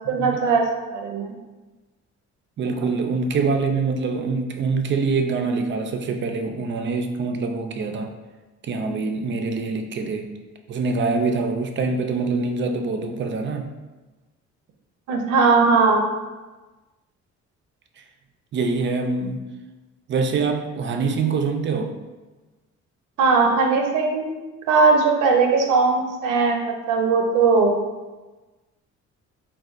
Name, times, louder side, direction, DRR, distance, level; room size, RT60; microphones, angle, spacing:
voice 1, 0.1-1.3 2.8-2.9 15.1-16.0 23.2-24.3 24.7-27.7, right 4 dB, 85° right, 2 dB, 0.6 m, -19 dB
voice 2, 2.6-8.1 8.6-10.3 10.7-13.7 18.0-18.1 18.5-19.4 20.1-21.9, right 4 dB, 40° right, 4 dB, 0.4 m, -24 dB
3.9 x 2.3 x 2.4 m, 1.2 s
cardioid pair, 90°, 30 cm